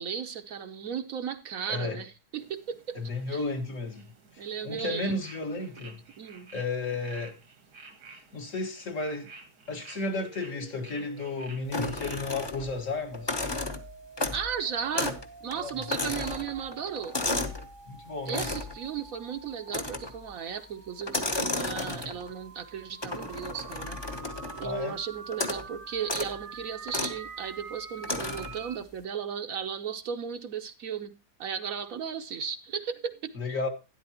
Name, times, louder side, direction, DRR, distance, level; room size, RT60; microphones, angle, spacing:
voice 1, 0.0-3.0 3.3-3.4 4.4-5.2 6.2-6.5 14.3-17.2 18.3-24.0 24.6-31.1 31.4-33.6, right 7 dB, 65° right, 1.1 m, -35 dB
voice 2, 1.7-2.0 3.0-4.1 4.6-6.0 6.5-7.4 8.3-9.3 9.7-13.4 15.6-15.7 17.9-18.4 24.6-25.0 33.4-33.7, left 3 dB, 50° left, 1.9 m, -33 dB
sound 1, 2.4-12.4, right 3 dB, 90° right, 2.2 m, -52 dB
sound 2, 9.9-28.8, right 5 dB, 40° right, 1.0 m, -48 dB
sound 3, 11.7-12.8 13.1-14.5 14.9-15.3 15.5-17.7 18.3-18.8 19.7-20.2 21.0-22.3 23.0-24.7 25.3-25.7 26.0-26.3 26.9-27.2 28.0-28.6, left 2 dB, 20° left, 0.8 m, -33 dB
12.0 x 10.5 x 2.9 m
omnidirectional pair, 1.7 m